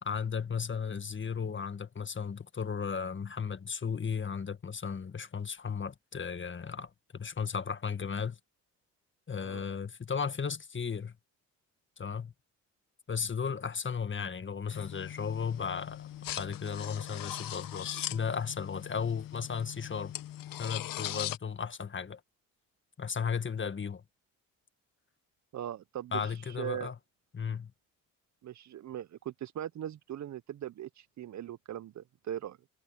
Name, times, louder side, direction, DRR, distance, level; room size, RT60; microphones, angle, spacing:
voice 1, 0.0-8.4 9.3-11.1 12.0-12.3 13.1-16.1 16.4-20.1 20.6-22.2 23.0-24.0 26.1-26.9 27.3-27.7, left 6 dB, 30° left, 1.7 m, -35 dB
sound 1, 14.7-21.4, left 13 dB, 65° left, 1.4 m, -40 dB
voice 2, 25.5-26.9 28.4-32.6, right 11 dB, 50° right, 0.7 m, -40 dB
supercardioid pair, 65°, 36 cm